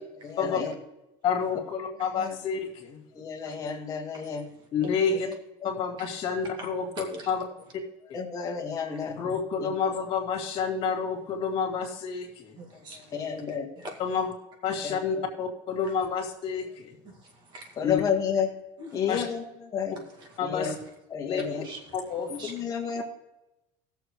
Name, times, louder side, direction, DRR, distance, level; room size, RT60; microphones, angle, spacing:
voice 1, 0.2-0.7 2.2-2.3 3.1-4.4 5.0-5.3 8.1-9.2 9.6-9.7 13.1-13.7 14.8-15.0 17.8-18.5 18.9-19.4 19.7-20.0 20.4-20.7 21.1-21.6 22.5-23.0, left 7 dB, 25° left, 0 dB, 1.7 m, -30 dB
voice 2, 1.2-3.0 4.7-5.3 5.6-7.4 9.2-12.6 14.0-14.3 14.6-17.0 17.8-18.0 19.1-19.2 20.4-20.7 21.3-21.4 21.9-22.3, left 6 dB, 40° left, 1 dB, 2.6 m, -29 dB
voice 3, 3.5-3.8 4.1-4.9 6.0-6.1 6.6-6.7 7.0-7.3 9.0-9.1 12.6-14.0 15.8-15.9 17.0-17.9 18.8-19.1 20.0-20.4 20.7-20.9 21.3-22.6 22.9-23.0, equal, 30° right, 3 dB, 1.9 m, -44 dB
19.5 x 7.0 x 3.2 m, 0.96 s
cardioid pair, 175°, 14 cm